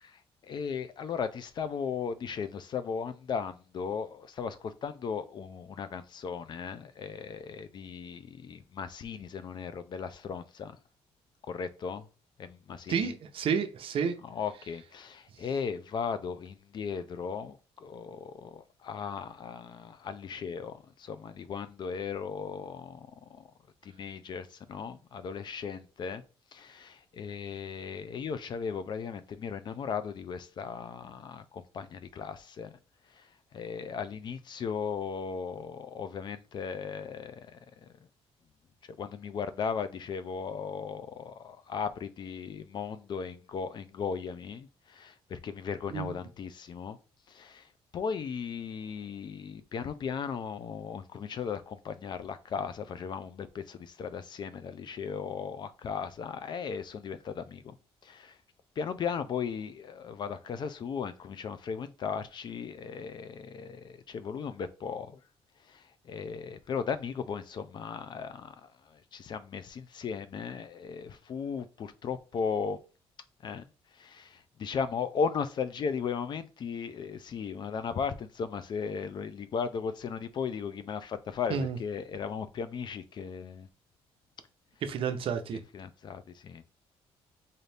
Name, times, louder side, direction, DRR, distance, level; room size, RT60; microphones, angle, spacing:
voice 1, 0.0-10.8 11.4-12.1 12.4-13.1 14.2-23.5 23.8-26.2 26.5-32.8 33.1-37.9 39.0-47.0 47.3-57.8 58.0-58.4 58.8-65.2 65.7-72.8 73.4-73.6 73.9-83.7 85.7-86.6, left 6 dB, 45° left, 0.4 m, -37 dB
voice 2, 12.9-14.2 45.9-46.1 81.5-81.8 84.8-85.6, right 6 dB, 55° right, 0.7 m, -30 dB
4.0 x 2.7 x 3.3 m
cardioid pair, 145°, 11 cm